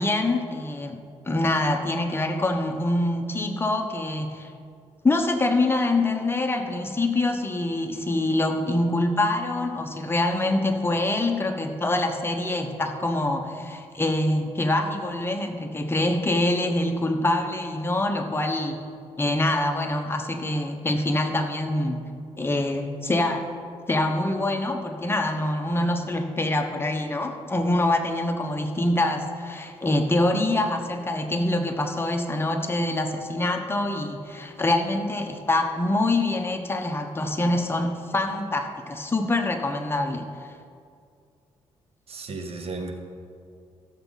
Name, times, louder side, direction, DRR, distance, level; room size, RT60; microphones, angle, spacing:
voice 1, 0.0-4.5 5.0-18.8 19.2-22.1 22.4-23.5 23.9-40.3, left 2 dB, 20° left, 4 dB, 1.1 m, -25 dB
voice 2, 42.1-42.9, right 3 dB, 65° right, 4 dB, 1.4 m, -34 dB
16.5 x 7.3 x 4.1 m, 2.3 s
cardioid pair, 80°, 11 cm